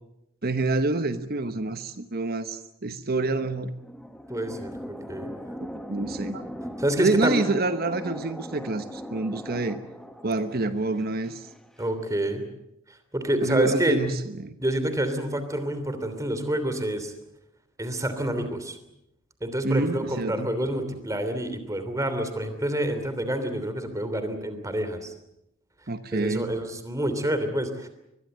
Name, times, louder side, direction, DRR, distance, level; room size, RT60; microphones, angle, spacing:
voice 1, 0.4-3.7 5.9-6.4 7.0-9.8 10.2-11.4 13.4-14.5 19.6-20.5 25.9-26.5, right 2 dB, 45° right, 10 dB, 1.2 m, -27 dB
sound 1, 3.5-11.9, equal, ahead, 1.4 m, -40 dB
voice 2, 4.3-5.3 6.8-7.4 11.8-12.4 13.1-14.0 14.6-17.1 17.8-18.8 19.4-25.1 26.1-27.9, right 1 dB, 15° right, 9 dB, 3.1 m, -28 dB
23.5 x 21.5 x 8.0 m, 0.83 s
head